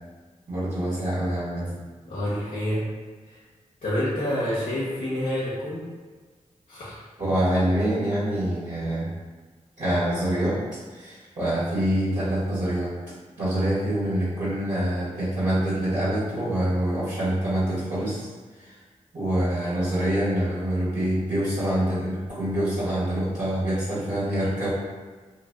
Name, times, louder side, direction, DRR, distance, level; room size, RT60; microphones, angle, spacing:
voice 1, 0.5-1.7 7.2-9.1 9.8-10.6 10.9-12.9 13.4-18.3 18.5-18.7 19.1-24.7, right 1 dB, 60° right, -13 dB, 1.4 m, -25 dB
voice 2, 2.1-2.9 3.3-3.4 3.8-5.8 6.7-7.0, left 1 dB, 70° left, -9 dB, 0.8 m, -28 dB
2.7 x 2.6 x 2.3 m, 1.4 s
cardioid pair, 45°, 14 cm